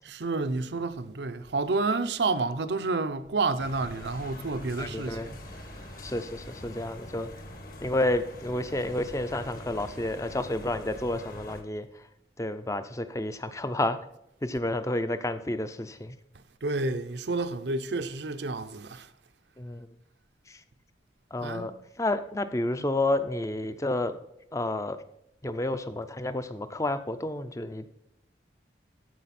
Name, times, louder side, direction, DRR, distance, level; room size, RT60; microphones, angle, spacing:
voice 1, 0.0-5.3 16.6-19.1 21.4-21.7 22.8-23.0, right 3 dB, 70° right, 0.7 m, -30 dB
sound 1, 3.6-11.6, left 1 dB, 50° left, 1.5 m, -44 dB
voice 2, 4.8-5.3 6.0-7.3 7.8-12.0 12.4-14.0 14.4-16.2 19.6-19.9 20.5-20.6 21.3-24.2 24.5-25.0 25.4-27.9, left 1 dB, 15° left, 0.5 m, -30 dB
14.0 x 5.0 x 4.2 m
head